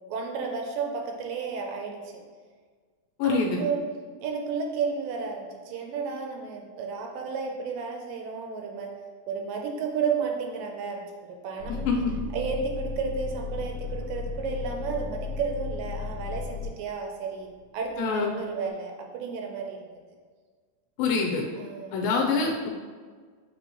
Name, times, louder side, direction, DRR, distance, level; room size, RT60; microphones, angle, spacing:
voice 1, 0.1-2.0 3.2-3.8 4.2-8.9 9.3-11.9 12.3-19.8 21.6-21.9, right 5 dB, 75° right, 1 dB, 2.2 m, -32 dB
voice 2, 3.2-3.6 11.9-12.0 18.0-18.3 21.0-21.4 21.9-22.7, left 4 dB, 85° left, -1 dB, 2.7 m, -25 dB
sound 1, 11.6-16.7 17.4-18.1, left 5 dB, 65° left, 1.6 m, -35 dB
8.2 x 3.8 x 3.0 m, 1.5 s
omnidirectional pair, 4.1 m